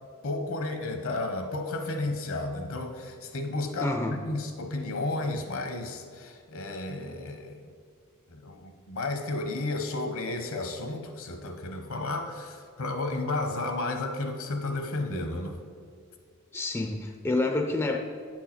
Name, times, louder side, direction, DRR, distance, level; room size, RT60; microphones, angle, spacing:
voice 1, 0.2-7.7 8.3-15.6, left 2 dB, 65° left, 5 dB, 0.9 m, -32 dB
voice 2, 3.8-4.2 16.5-18.0, left 2 dB, 10° left, 3 dB, 0.4 m, -28 dB
9.2 x 4.6 x 5.8 m, 2.1 s
head